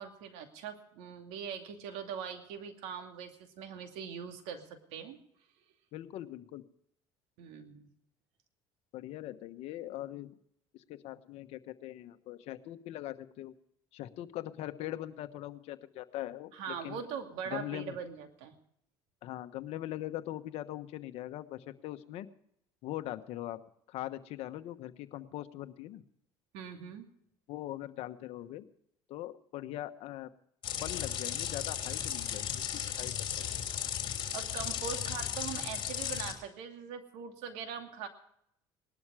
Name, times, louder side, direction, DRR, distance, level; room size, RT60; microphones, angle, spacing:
voice 1, 0.0-5.2 7.4-7.9 16.5-18.5 26.5-27.1 34.3-38.1, right 7 dB, 80° right, 5 dB, 2.5 m, -42 dB
voice 2, 5.9-6.6 8.9-10.3 10.7-13.5 13.9-17.0 17.5-18.0 19.2-22.3 22.8-23.6 23.9-26.0 27.5-28.6 29.1-30.3 30.8-32.6 33.0-33.5, left 14 dB, 70° left, 10 dB, 1.2 m, -41 dB
sound 1, 30.6-36.3, left 9 dB, 50° left, 3.1 m, -35 dB
19.0 x 12.5 x 4.9 m, 0.73 s
supercardioid pair, 105°, 11 cm